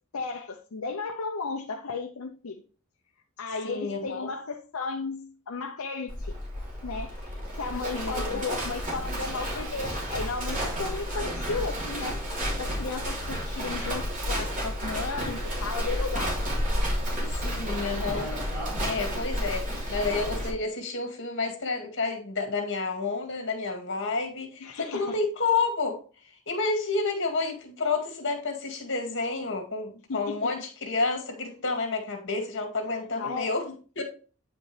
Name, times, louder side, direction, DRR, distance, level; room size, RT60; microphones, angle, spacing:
voice 1, 0.1-2.6 3.4-12.2 12.6-16.4 24.6-25.2 30.1-30.5 33.2-33.5, left 4 dB, 80° left, 0.7 m, -35 dB
voice 2, 3.6-4.3 7.9-8.4 17.4-26.0 26.5-34.0, left 3 dB, 55° left, 2.1 m, -30 dB
Livestock farm animals working animals, 6.1-20.5, equal, 40° right, 3.1 m, -31 dB
9.1 x 5.2 x 3.3 m
head